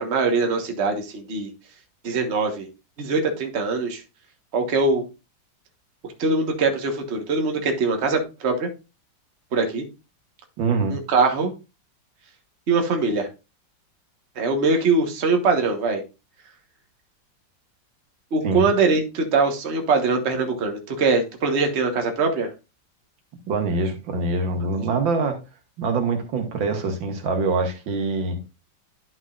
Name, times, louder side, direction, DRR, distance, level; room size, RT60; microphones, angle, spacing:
voice 1, 0.0-1.5 2.0-2.7 3.0-4.0 4.5-5.0 6.0-8.7 9.5-9.8 10.9-11.5 12.7-13.3 14.3-16.0 18.3-22.5, right 4 dB, 40° right, 1.4 m, -22 dB
voice 2, 10.6-11.0 18.4-18.7 23.5-25.4 25.8-28.4, right 3 dB, 85° right, 2.1 m, -24 dB
11.0 x 6.3 x 2.4 m
omnidirectional pair, 2.1 m